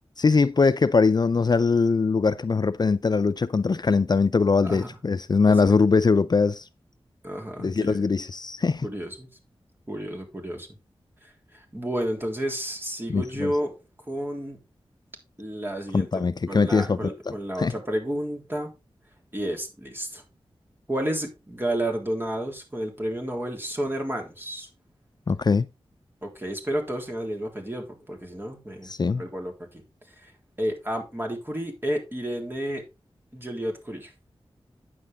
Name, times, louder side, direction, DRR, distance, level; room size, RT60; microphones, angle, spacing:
voice 1, 0.2-6.7 7.6-8.9 13.1-13.5 15.9-17.7 25.3-25.7 28.8-29.2, left 4 dB, 45° left, 0.5 m, -22 dB
voice 2, 7.2-8.1 8.8-9.3 9.9-10.7 11.2-13.7 14.1-14.6 15.4-18.7 19.3-20.2 20.9-24.7 26.2-28.9 29.2-29.8 30.2-30.3 30.6-32.8 33.3-34.1, right 1 dB, 20° right, 3.5 m, -31 dB
9.4 x 7.6 x 3.6 m
wide cardioid pair, 70°, 10 cm